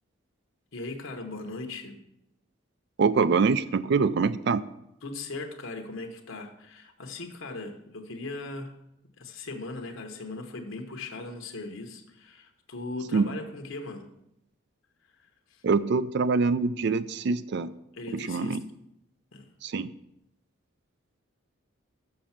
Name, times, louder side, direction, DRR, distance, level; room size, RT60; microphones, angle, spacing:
voice 1, 0.7-2.0 5.0-8.8 9.2-14.1 15.5-15.6 17.9-18.6 19.3-19.5, left 3 dB, 70° left, 4 dB, 0.9 m, -39 dB
voice 2, 3.0-4.6 13.1-13.3 15.6-17.7 18.1-18.6 19.6-19.9, right 4 dB, 55° right, 15 dB, 0.3 m, -24 dB
6.8 x 6.2 x 5.8 m, 0.82 s
head